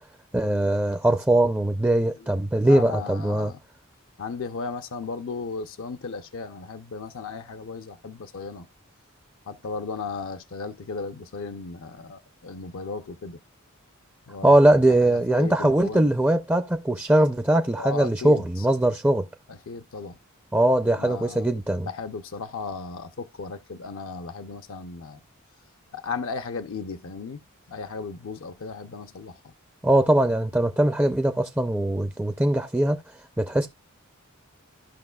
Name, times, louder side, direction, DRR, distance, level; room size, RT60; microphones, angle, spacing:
voice 1, 0.3-3.5 14.4-19.3 20.5-21.9 29.8-33.7, right 1 dB, 10° right, 0.4 m, -21 dB
voice 2, 2.6-3.6 4.2-8.7 9.5-13.4 14.3-14.5 15.0-16.1 17.8-18.4 19.7-20.2 21.0-21.4 21.9-25.2 25.9-27.4 27.7-29.4, left 4 dB, 65° left, 0.6 m, -35 dB
15.0 x 5.6 x 2.2 m
head